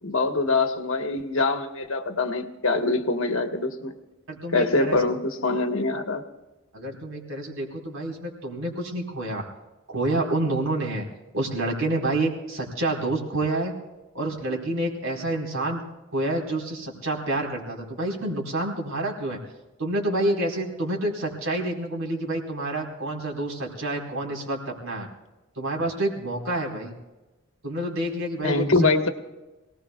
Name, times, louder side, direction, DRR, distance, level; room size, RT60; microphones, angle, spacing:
voice 1, 0.0-3.9 4.5-6.2 28.4-29.1, left 3 dB, 65° left, 5 dB, 1.4 m, -24 dB
voice 2, 4.3-5.0 6.7-9.4 9.9-11.1 11.3-13.7 14.1-15.8 16.1-19.4 19.8-25.1 25.6-26.9 27.6-28.7, right 1 dB, 65° right, -1 dB, 4.4 m, -28 dB
27.5 x 19.0 x 2.3 m, 1.1 s
head